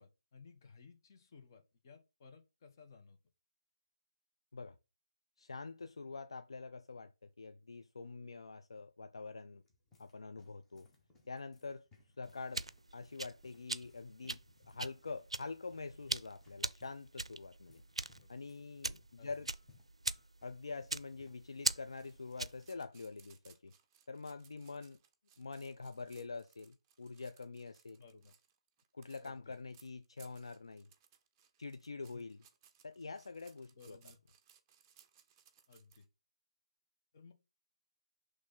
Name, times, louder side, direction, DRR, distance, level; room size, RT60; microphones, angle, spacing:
voice 1, 0.0-3.2 18.2-18.3 19.2-19.3 28.0-28.3 29.2-29.5 32.1-32.3 33.7-34.2 35.7-36.0 37.1-37.3, left 5 dB, 35° left, 1.2 m, -58 dB
voice 2, 5.4-9.6 10.0-10.9 11.3-11.9 12.2-12.7 12.9-14.4 14.7-17.8 18.3-19.5 20.4-23.7 24.1-25.0 25.4-28.0 28.9-30.9 31.6-32.4 32.8-34.0, left 4 dB, 60° left, 0.5 m, -46 dB
sound 1, 9.4-22.3 22.5-22.7 23.4-23.7, left 4 dB, 10° left, 1.3 m, -68 dB
sound 2, 12.2-22.7, right 2 dB, 80° right, 0.4 m, -41 dB
sound 3, 21.9-36.1, right 8 dB, 20° right, 0.6 m, -66 dB
6.3 x 3.2 x 5.5 m
figure-of-eight pair, 145°, 3 cm